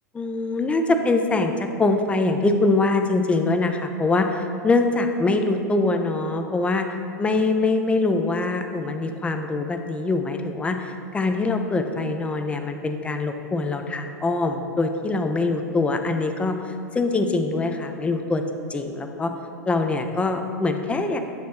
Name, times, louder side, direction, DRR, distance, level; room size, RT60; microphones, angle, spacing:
voice 1, 0.1-18.4 18.7-19.3 19.7-21.2, left 3 dB, 10° left, 6 dB, 0.4 m, -23 dB
8.6 x 3.1 x 4.2 m, 2.5 s
figure-of-eight pair, 90°, 10 cm